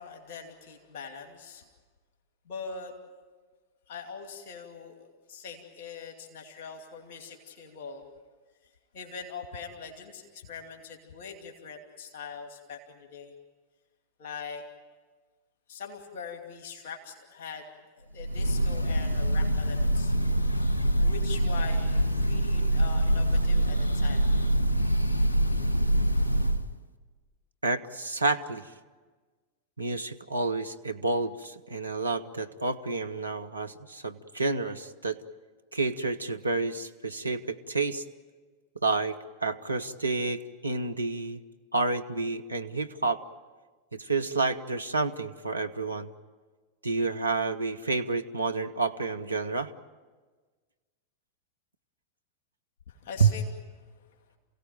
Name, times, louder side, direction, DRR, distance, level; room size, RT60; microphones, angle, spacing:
voice 1, 0.0-1.7 2.5-2.9 3.9-8.1 8.6-13.3 14.2-14.6 15.7-17.7 17.9-20.1 21.0-24.3 52.9-53.5 54.0-54.1, left 5 dB, 50° left, 3 dB, 2.6 m, -42 dB
Breathing / Bird, 18.2-26.7, right 1 dB, 80° left, 0.9 m, -25 dB
voice 2, 27.6-28.7 29.8-35.2 35.7-38.0 38.8-41.4 41.7-43.2 43.9-46.1 46.8-49.7 53.2-53.3, right 3 dB, 80° right, 5 dB, 0.9 m, -29 dB
28.0 x 17.0 x 9.0 m, 1.4 s
figure-of-eight pair, 90°, 0 cm